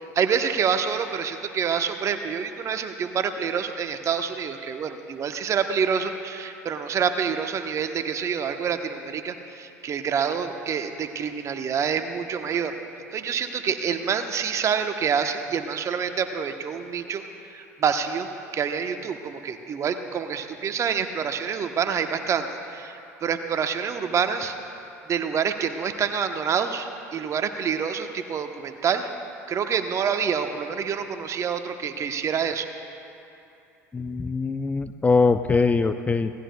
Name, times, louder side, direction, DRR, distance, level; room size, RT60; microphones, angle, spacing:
voice 1, 0.1-12.8 13.1-17.2 17.5-18.3 18.5-24.5 25.1-29.1 29.5-32.7, right 7 dB, 35° right, 7 dB, 1.1 m, -27 dB
voice 2, 33.9-36.3, left 4 dB, 15° left, 9 dB, 0.5 m, -22 dB
26.5 x 18.5 x 2.3 m, 2.8 s
figure-of-eight pair, 70°, 8 cm